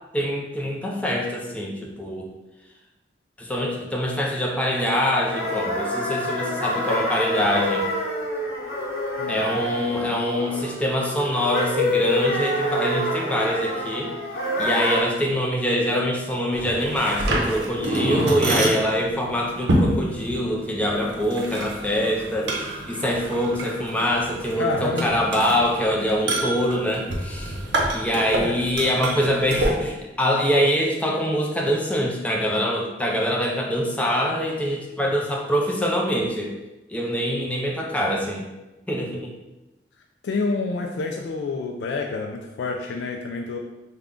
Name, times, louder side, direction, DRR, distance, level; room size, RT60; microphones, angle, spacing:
voice 1, 0.1-2.3 3.4-7.9 9.3-14.1 14.6-27.5 27.9-36.5 36.9-38.4 38.9-39.3, equal, 10° left, -1 dB, 0.4 m, -24 dB
sound 1, 4.7-15.0, left 1 dB, 60° left, 0.9 m, -27 dB
voice 2, 9.2-9.6 24.6-25.1 28.4-29.1 40.2-43.6, left 3 dB, 75° left, 2 dB, 0.3 m, -28 dB
sound 2, 16.5-29.7, right 1 dB, 85° right, 0.6 m, -28 dB
3.6 x 2.2 x 3.5 m, 1.0 s
head